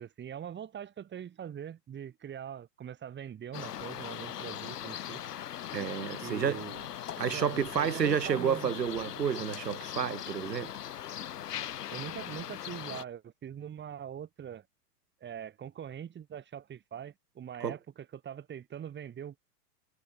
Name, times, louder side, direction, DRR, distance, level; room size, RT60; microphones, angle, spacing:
voice 1, 0.0-5.2 6.2-6.9 7.3-8.7 11.9-14.7 15.2-19.5, right 9 dB, 20° right, 5.1 m, -42 dB
sound 1, 3.5-13.0, left 10 dB, 75° left, 5.6 m, -40 dB
voice 2, 5.7-6.6 7.2-10.7 17.6-17.8, right 7 dB, 85° right, 4.1 m, -30 dB
hypercardioid pair, 115°, 48 cm